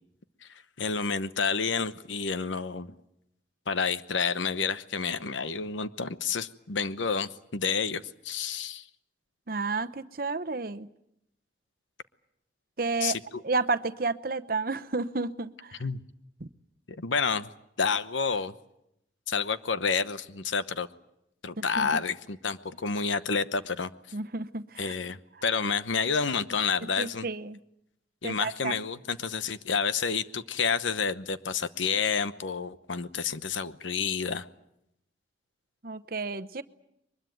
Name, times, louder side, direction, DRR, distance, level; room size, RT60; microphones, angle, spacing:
voice 1, 0.8-2.9 3.7-8.8 13.0-13.4 15.8-16.0 17.0-17.5 17.8-18.5 19.3-20.9 21.4-23.9 24.8-27.2 28.2-34.5, left 5 dB, 90° left, 13 dB, 1.0 m, -29 dB
voice 2, 9.5-10.9 12.8-13.2 13.4-15.8 16.4-16.5 21.6-22.0 24.1-24.9 25.3-25.5 26.8-27.6 28.2-28.8 35.8-36.6, right 3 dB, 50° right, 12 dB, 0.9 m, -31 dB
23.0 x 21.0 x 9.2 m, 0.80 s
head